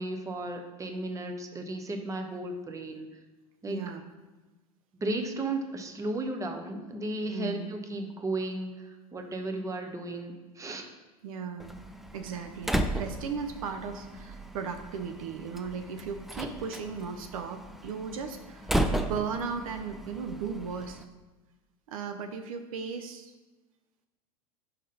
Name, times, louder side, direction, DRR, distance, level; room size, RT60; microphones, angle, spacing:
voice 1, 0.0-3.1 3.6-3.8 4.9-10.9, right 2 dB, 15° right, 4 dB, 0.8 m, -34 dB
voice 2, 3.7-4.0 7.3-7.7 11.2-11.7 12.1-21.0 21.9-23.3, right 6 dB, 65° right, 7 dB, 0.5 m, -36 dB
Slam, 11.6-21.0, right 1 dB, ahead, 0.3 m, -35 dB
5.4 x 3.6 x 5.4 m, 1.2 s
figure-of-eight pair, 80°, 19 cm